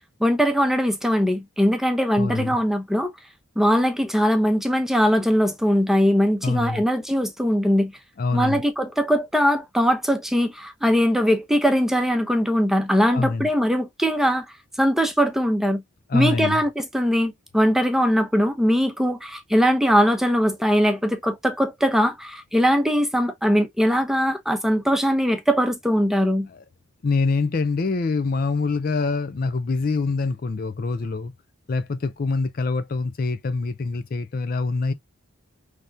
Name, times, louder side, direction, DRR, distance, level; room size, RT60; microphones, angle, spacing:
voice 1, 0.2-3.1 3.6-7.9 8.3-14.5 14.8-15.8 16.1-26.5, equal, ahead, 0.7 m, -21 dB
voice 2, 2.2-2.6 6.4-6.8 8.2-8.6 13.1-13.5 16.1-16.6 26.5-26.6 27.0-31.3 31.7-34.9, left 3 dB, 45° left, 0.4 m, -25 dB
5.7 x 3.4 x 2.6 m
head